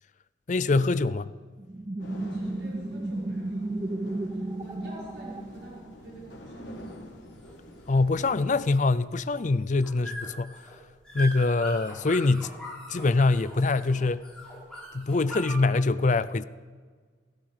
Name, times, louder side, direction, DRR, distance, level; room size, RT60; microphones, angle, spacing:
voice 1, 0.5-1.3 7.9-10.6 11.1-12.5 12.9-14.2 14.9-16.4, left 3 dB, 40° left, 0.5 m, -24 dB
sound 1, 1.6-6.1, right 2 dB, 20° right, 0.5 m, -33 dB
sound 2, 2.0-8.5, left 1 dB, 90° left, 3.1 m, -48 dB
voice 2, 2.1-4.0 4.2-6.9, right 1 dB, 75° right, 5.9 m, -46 dB
sound 3, 4.9-15.5, left 1 dB, 5° left, 4.9 m, -42 dB
17.0 x 16.5 x 5.0 m
head